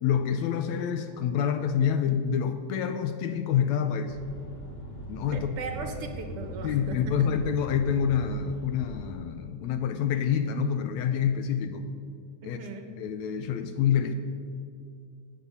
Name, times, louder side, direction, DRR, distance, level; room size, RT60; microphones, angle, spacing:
voice 1, 0.0-4.2 5.1-5.6 6.6-11.9 12.4-12.6 13.0-14.1, left 8 dB, 80° left, 9 dB, 1.8 m, -27 dB
sound 1, 4.1-9.1, equal, 25° left, 1.8 m, -40 dB
voice 2, 5.3-7.2 12.4-12.9, right 4 dB, 60° right, 5 dB, 1.8 m, -38 dB
17.0 x 8.4 x 5.4 m, 2.3 s
omnidirectional pair, 3.5 m